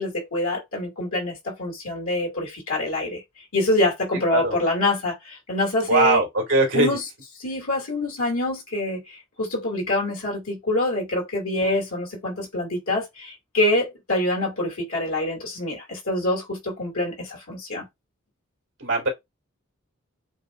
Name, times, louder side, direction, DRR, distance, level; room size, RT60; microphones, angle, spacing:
voice 1, 0.0-3.2 3.5-6.2 6.7-7.0 7.4-17.9, left 2 dB, 80° left, 2.4 m, -25 dB
voice 2, 5.9-7.0 11.5-11.8 18.8-19.1, right 3 dB, 60° right, 2.5 m, -21 dB
7.8 x 2.7 x 2.4 m
head